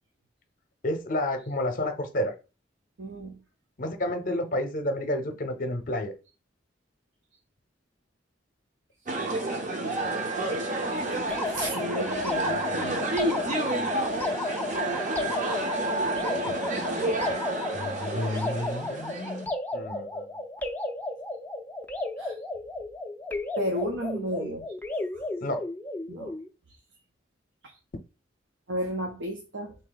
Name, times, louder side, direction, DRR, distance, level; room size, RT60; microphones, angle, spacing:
voice 1, 0.8-2.3 3.8-6.1 17.7-20.3 25.4-25.6, left 1 dB, 45° left, 0.7 m, -30 dB
voice 2, 3.0-3.4 11.0-14.3 16.7-17.8 22.2-22.4 23.6-24.6 25.1-25.2 26.1-26.3 27.6-27.8 28.7-29.8, equal, 75° right, 0.7 m, -35 dB
sound 1, 9.1-19.5, right 2 dB, 40° right, 0.7 m, -30 dB
sound 2, 11.3-26.5, left 2 dB, 10° left, 0.4 m, -34 dB
3.6 x 2.7 x 3.9 m
head